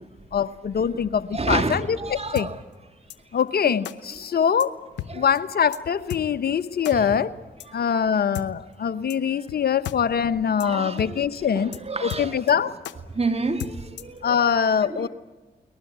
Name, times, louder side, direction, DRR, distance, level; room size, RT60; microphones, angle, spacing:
voice 1, 0.3-2.5 3.3-4.8 5.1-7.3 7.7-11.7 12.0-12.8 14.2-15.1, left 7 dB, 60° left, 0.9 m, -23 dB
voice 2, 1.3-2.6 3.6-3.7 5.1-5.3 6.9-7.1 7.7-7.8 10.6-12.6 13.1-14.5 14.8-15.1, right 3 dB, 35° right, 3.0 m, -30 dB
sound 1, 2.4-2.5 3.1-3.2 3.8-4.0 4.6-4.7 5.0-5.1 5.4-5.5 5.7-5.8 6.1-6.2 6.8-7.0 7.6-7.7 8.3-8.5 9.1-9.2 9.5-9.6 9.8-10.0 10.2-10.3 10.6-10.7 11.0-11.1 11.4-11.5 11.7-11.8 12.1-12.5 12.8-13.0 13.6-14.2, left 13 dB, 85° left, 0.9 m, -34 dB
22.5 x 20.0 x 9.4 m
supercardioid pair, 45°, 18 cm